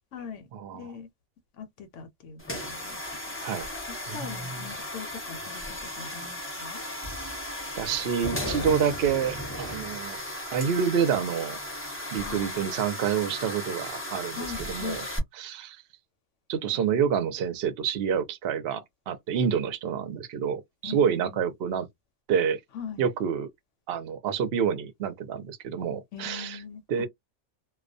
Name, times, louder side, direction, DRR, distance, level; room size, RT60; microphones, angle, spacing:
voice 1, 0.1-0.5 0.7-1.1 1.5-3.0 3.3-3.4 3.9-6.8 12.2-12.7 14.3-15.1 20.8-21.5 22.7-23.1 26.1-27.1, left 7 dB, 70° left, 0.9 m, -41 dB
sound 1, 2.4-15.2, left 1 dB, 15° left, 0.5 m, -36 dB
voice 2, 7.8-10.2 10.5-11.6 12.1-15.0 15.4-15.8 16.5-21.9 22.3-22.6 23.0-23.5 23.9-26.5 26.9-27.1, right 7 dB, 60° right, 0.8 m, -28 dB
2.3 x 2.1 x 2.5 m
omnidirectional pair, 1.4 m